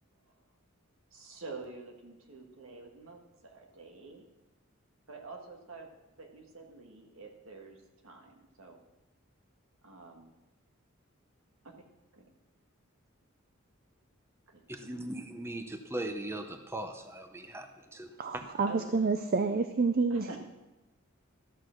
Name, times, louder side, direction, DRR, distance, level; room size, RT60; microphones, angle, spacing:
voice 1, 1.1-4.2 5.1-5.9 6.2-7.8 8.0-8.8 9.8-10.3 11.6-11.8 12.1-12.3 14.5-15.0 18.7-19.0 20.1-20.4, right 3 dB, 75° right, 2 dB, 1.7 m, -48 dB
voice 2, 14.8-18.4, right 1 dB, 10° right, 6 dB, 0.7 m, -39 dB
voice 3, 18.2-20.3, right 4 dB, 45° right, 9 dB, 0.5 m, -28 dB
13.0 x 6.2 x 6.4 m, 1.0 s
head